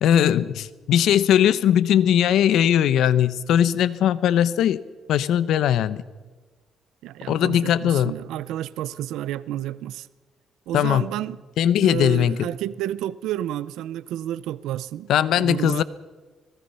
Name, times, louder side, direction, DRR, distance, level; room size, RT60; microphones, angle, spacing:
voice 1, 0.0-4.8 5.1-6.0 7.3-8.1 10.7-11.0 11.6-12.4 15.1-15.8, left 10 dB, 80° left, 0.9 m, -19 dB
voice 2, 7.0-10.1 10.7-11.4 11.8-15.8, right 13 dB, 90° right, 0.7 m, -30 dB
25.5 x 19.5 x 5.7 m
cardioid pair, 90°, 0 cm